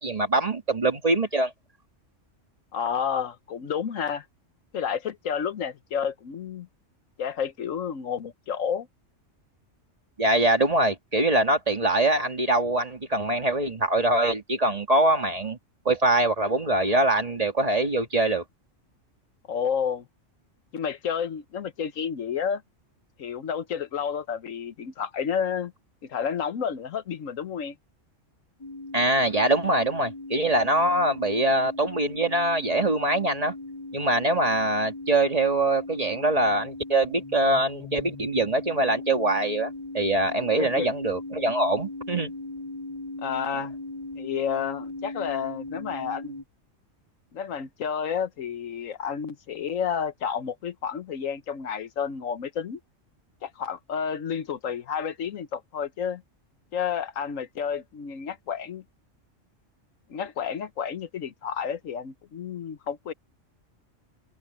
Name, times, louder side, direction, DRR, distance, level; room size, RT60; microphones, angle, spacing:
voice 1, 0.0-1.5 10.2-15.6 15.9-18.4 28.9-33.5 33.9-42.3, right 2 dB, 30° right, 1.8 m, -23 dB
voice 2, 2.7-4.2 4.7-6.7 7.2-8.9 19.5-20.0 20.7-22.6 23.2-25.7 26.0-27.8 40.6-40.9 43.2-43.7 44.2-46.3 47.3-52.8 53.4-56.2 56.7-58.8 60.1-63.1, left 7 dB, 90° left, 1.4 m, -30 dB
sound 1, 28.6-46.4, left 2 dB, 25° left, 0.5 m, -38 dB
omnidirectional pair, 1.3 m